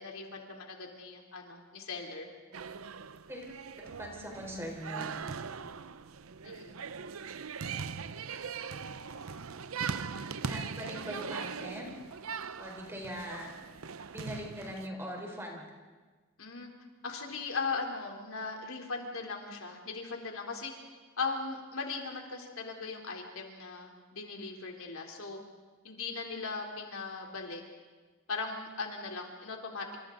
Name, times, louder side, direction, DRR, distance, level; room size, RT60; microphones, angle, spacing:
voice 1, 0.0-2.3 6.4-6.8 16.4-16.7 17.0-20.7 21.2-25.4 25.8-27.6 28.3-30.0, left 4 dB, 80° left, 1 dB, 3.5 m, -38 dB
sound 1, 2.5-14.9, right 6 dB, 90° right, 0.7 m, -40 dB
voice 2, 3.7-5.1 10.5-11.9 12.6-13.5 14.1-15.7, equal, 10° right, 0 dB, 4.0 m, -41 dB
29.0 x 27.0 x 4.0 m, 1.4 s
head